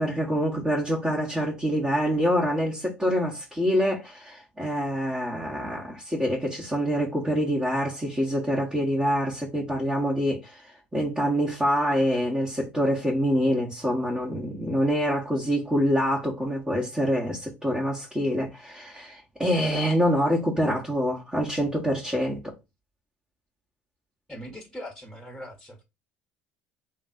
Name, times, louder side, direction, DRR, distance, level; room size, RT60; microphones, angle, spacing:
voice 1, 0.0-22.5, equal, 10° right, 1.5 m, -26 dB
voice 2, 24.3-25.8, equal, 5° left, 1.6 m, -40 dB
3.2 x 2.5 x 4.3 m
hypercardioid pair, 65°, 6 cm